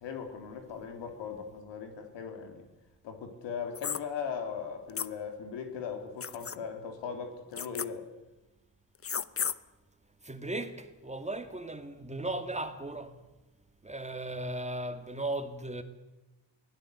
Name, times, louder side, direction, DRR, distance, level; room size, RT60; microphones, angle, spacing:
voice 1, 0.0-2.7 3.0-8.1, left 6 dB, 75° left, 3.4 m, -39 dB
sound 1, 3.7-4.0 5.0-5.1 6.2-6.6 7.6-7.9 9.0-9.5, left 7 dB, 30° left, 0.9 m, -33 dB
voice 2, 10.2-13.2 13.8-15.8, right 2 dB, 15° right, 2.2 m, -36 dB
23.5 x 17.0 x 8.1 m
supercardioid pair, 60°, 44 cm